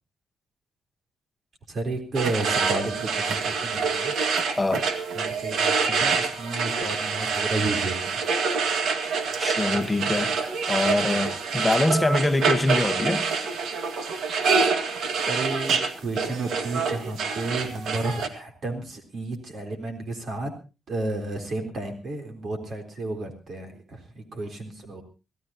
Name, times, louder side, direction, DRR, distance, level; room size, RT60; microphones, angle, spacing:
voice 1, 1.7-4.1 5.1-8.2 15.2-20.5 20.9-25.0, right 2 dB, 50° right, 3.8 m, -32 dB
sound 1, 2.1-18.3, right 5 dB, 85° right, 2.0 m, -26 dB
voice 2, 9.4-10.3 10.7-13.2, left 2 dB, 10° left, 1.3 m, -24 dB
25.5 x 16.0 x 2.9 m
cardioid pair, 140°, 0 cm